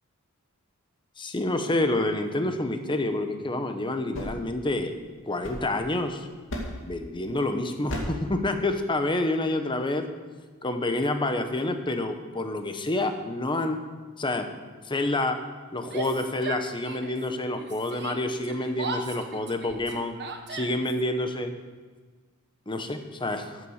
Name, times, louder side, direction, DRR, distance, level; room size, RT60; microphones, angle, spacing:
voice 1, 1.2-4.9 5.2-6.3 6.8-10.1 10.6-13.8 14.2-14.5 14.9-15.4 15.7-20.1 20.5-21.5 22.7-23.6, left 2 dB, 20° left, 7 dB, 1.0 m, -28 dB
sound 1, 4.1-6.1 6.5-7.0 7.9-8.3, equal, 60° left, 2.4 m, -36 dB
Yell, 15.8-17.3 17.5-21.0, right 4 dB, 50° right, 1.2 m, -37 dB
13.5 x 7.2 x 6.4 m, 1.4 s
head